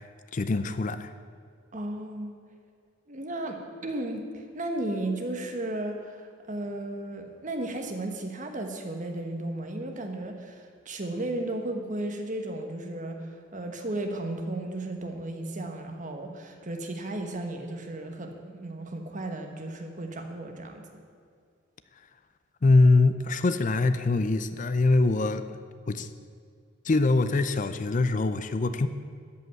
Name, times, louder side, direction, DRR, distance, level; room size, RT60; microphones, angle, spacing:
voice 1, 0.3-1.1 22.6-25.5 25.9-26.1 26.8-28.9, left 3 dB, 40° left, 11 dB, 0.5 m, -23 dB
voice 2, 1.7-2.3 3.1-20.9, right 1 dB, 40° right, 4 dB, 1.4 m, -34 dB
13.5 x 5.6 x 9.2 m, 2.2 s
head